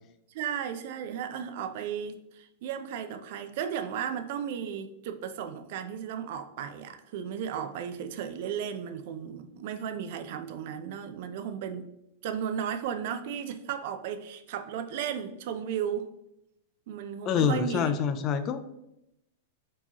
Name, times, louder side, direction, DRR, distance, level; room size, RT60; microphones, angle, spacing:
voice 1, 0.3-11.9 12.2-16.1 16.9-17.9, right 8 dB, 60° right, 8 dB, 0.4 m, -35 dB
voice 2, 17.3-18.6, left 7 dB, 35° left, 10 dB, 0.3 m, -26 dB
4.5 x 2.9 x 2.9 m, 0.83 s
hypercardioid pair, 130°, 0 cm